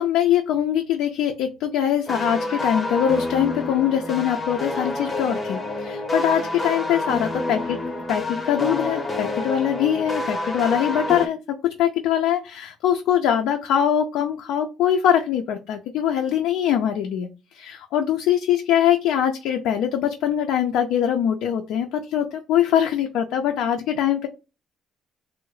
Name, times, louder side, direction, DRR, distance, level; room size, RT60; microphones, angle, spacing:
voice 1, 0.0-7.8 8.1-17.3 17.5-24.3, left 9 dB, 80° left, 4 dB, 0.4 m, -22 dB
sound 1, 2.1-11.3, left 2 dB, 20° left, 0.7 m, -28 dB
3.5 x 2.0 x 3.1 m, 0.29 s
cardioid pair, 110°, 0 cm